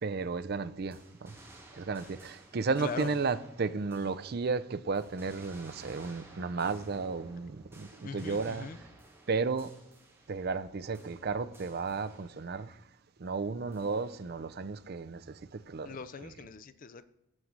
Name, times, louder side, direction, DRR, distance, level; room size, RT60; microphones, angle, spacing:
voice 1, 0.0-1.3 1.7-8.7 9.3-9.7 10.3-12.8 13.2-16.0 16.2-16.3, right 4 dB, 50° right, 0.5 m, -33 dB
sound 1, 0.9-4.6 4.9-10.7 10.9-12.6 13.7-14.4, right 2 dB, 10° right, 2.1 m, -55 dB
voice 2, 2.8-3.2 8.0-8.8 15.8-17.1, left 5 dB, 40° left, 0.4 m, -40 dB
6.4 x 6.2 x 7.4 m
head